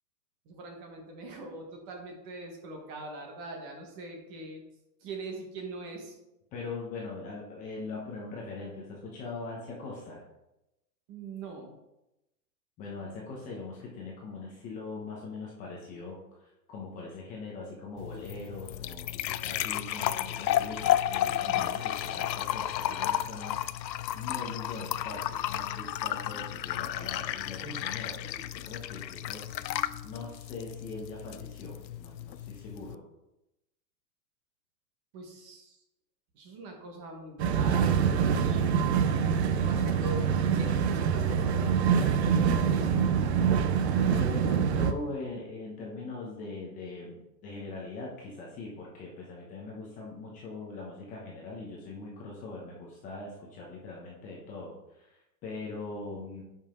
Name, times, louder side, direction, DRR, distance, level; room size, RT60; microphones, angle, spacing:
voice 1, 0.4-4.6 5.0-6.2 11.1-11.7 21.5-21.8 35.1-35.8 36.3-38.8 39.6-43.3, right 2 dB, 25° right, 2 dB, 1.3 m, -42 dB
voice 2, 6.5-10.2 12.8-33.0 44.1-56.4, left 3 dB, 15° left, -3 dB, 0.9 m, -41 dB
sound 1, 18.0-32.9, left 12 dB, 85° left, 0.6 m, -32 dB
sound 2, 37.4-44.9, right 7 dB, 40° right, 0.7 m, -25 dB
9.9 x 5.7 x 3.7 m, 0.91 s
hypercardioid pair, 160°, 50 cm